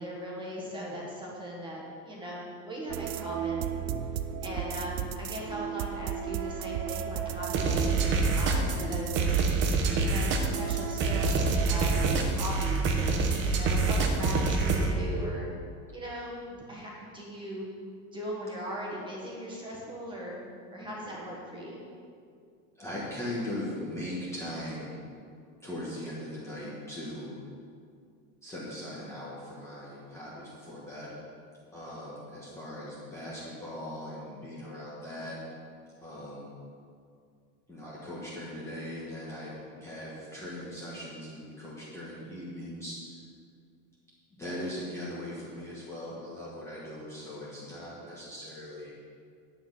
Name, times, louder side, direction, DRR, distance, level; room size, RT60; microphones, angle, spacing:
voice 1, 0.0-3.7 4.4-7.8 8.2-9.6 10.0-15.5 15.9-17.7 18.1-20.4 20.7-21.8, equal, 10° right, -3 dB, 1.5 m, -39 dB
sound 1, 2.9-12.2, right 8 dB, 85° right, 0.7 m, -34 dB
sound 2, 7.5-14.9, right 4 dB, 25° right, 0.8 m, -26 dB
voice 2, 22.8-24.9 25.6-27.4 28.4-31.2 31.7-35.4 36.0-36.5 37.7-43.0 44.4-48.9, left 1 dB, 5° left, -8 dB, 1.2 m, -39 dB
10.0 x 8.5 x 5.4 m, 2.3 s
supercardioid pair, 180°, 42 cm